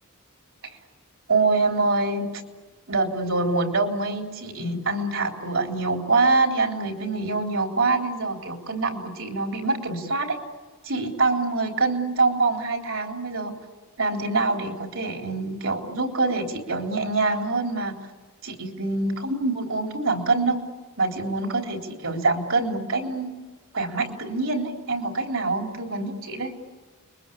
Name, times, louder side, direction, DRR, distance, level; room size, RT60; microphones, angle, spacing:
voice 1, 1.3-2.3 2.9-10.4 10.8-13.5 14.0-17.9 18.4-20.6 21.0-23.3 23.7-26.5, right 3 dB, 65° right, 2 dB, 3.8 m, -25 dB
30.0 x 23.0 x 8.6 m, 1.3 s
head